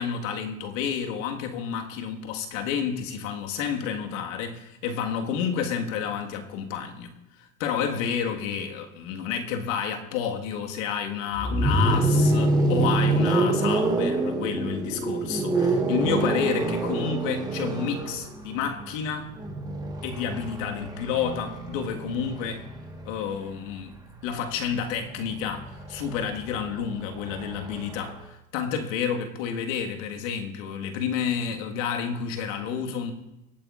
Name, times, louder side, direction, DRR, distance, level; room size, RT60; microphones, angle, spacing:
voice 1, 0.0-7.1 7.4-19.3 20.0-22.7 23.1-24.0 24.2-33.1, left 7 dB, 60° left, 1.8 m, -30 dB
sound 1, 11.3-23.3 24.6-28.2, right 2 dB, 10° right, 1.4 m, -27 dB
23.5 x 8.6 x 2.5 m
hypercardioid pair, 120°, 44 cm